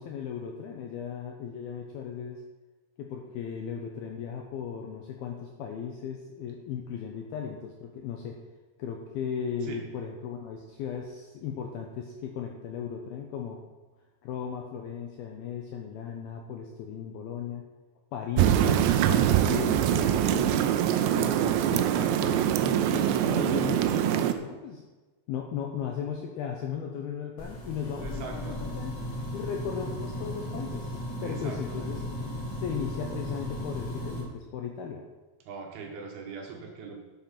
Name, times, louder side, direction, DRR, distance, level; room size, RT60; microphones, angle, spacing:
voice 1, 0.0-2.4 3.0-8.4 8.8-13.6 14.2-17.6 18.1-20.6 21.1-24.8 25.3-28.9 29.3-31.0 31.2-32.0 32.6-35.0, left 7 dB, 85° left, 2 dB, 2.2 m, -36 dB
sound 1, 18.4-24.3, right 11 dB, 85° right, 2.6 m, -24 dB
sound 2, 27.4-34.2, left 1 dB, 45° left, 1.4 m, -36 dB
voice 2, 28.0-28.6 31.2-31.9 35.5-37.0, right 5 dB, 65° right, 1 dB, 2.8 m, -41 dB
12.0 x 7.2 x 5.9 m, 1.2 s
omnidirectional pair, 5.7 m